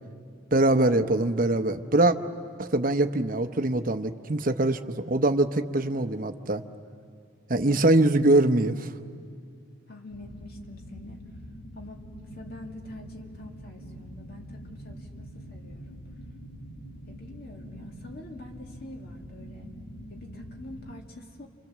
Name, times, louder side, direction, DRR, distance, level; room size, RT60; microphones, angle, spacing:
voice 1, 0.5-2.2 2.6-6.6 7.5-8.9, right 2 dB, 40° right, 8 dB, 0.8 m, -23 dB
voice 2, 9.9-11.2 11.7-16.0 17.1-19.7 20.1-21.5, left 1 dB, 45° left, 2 dB, 2.3 m, -45 dB
sound 1, 10.1-20.9, equal, 90° left, 2.2 m, -45 dB
29.0 x 26.5 x 7.4 m, 2.4 s
head